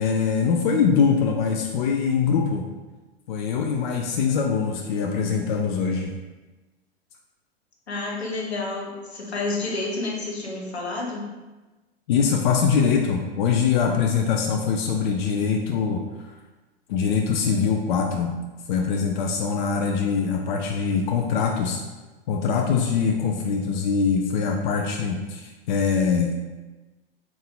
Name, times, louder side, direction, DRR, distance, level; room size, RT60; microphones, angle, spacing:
voice 1, 0.0-2.7 3.3-6.2 12.1-16.3 16.9-18.4 18.7-21.8 22.3-26.3, left 6 dB, 50° left, 2 dB, 0.4 m, -23 dB
voice 2, 7.9-11.3, left 2 dB, 80° left, -2 dB, 0.9 m, -29 dB
3.5 x 2.5 x 3.7 m, 1.2 s
figure-of-eight pair, 90°, 32 cm